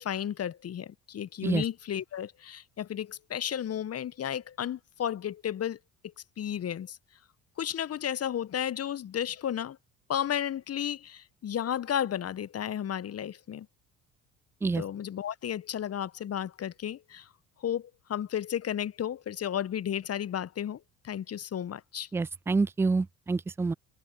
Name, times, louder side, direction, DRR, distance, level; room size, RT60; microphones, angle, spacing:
voice 1, 0.0-7.0 7.6-9.8 10.1-13.7 14.7-17.3 17.6-22.1, left 10 dB, 35° left, 1.1 m, -33 dB
voice 2, 22.1-23.7, right 3 dB, 5° right, 0.4 m, -27 dB
figure-of-eight pair, 55°, 42 cm